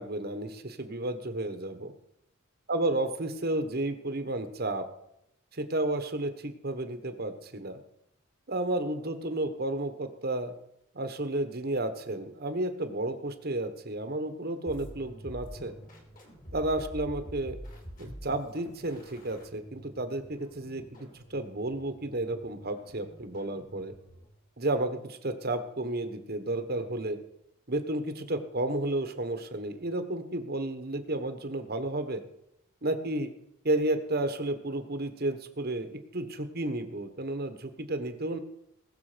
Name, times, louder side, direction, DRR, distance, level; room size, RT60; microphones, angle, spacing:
voice 1, 0.0-1.9 2.7-4.8 5.5-7.8 8.5-10.5 10.9-15.7 16.5-17.6 18.0-23.9 24.6-27.2 27.7-32.2 32.8-33.3 33.6-38.4, right 1 dB, 45° right, 8 dB, 1.3 m, -32 dB
sound 1, 14.7-24.4, equal, 40° left, 3.0 m, -47 dB
20.0 x 6.9 x 5.1 m, 0.79 s
head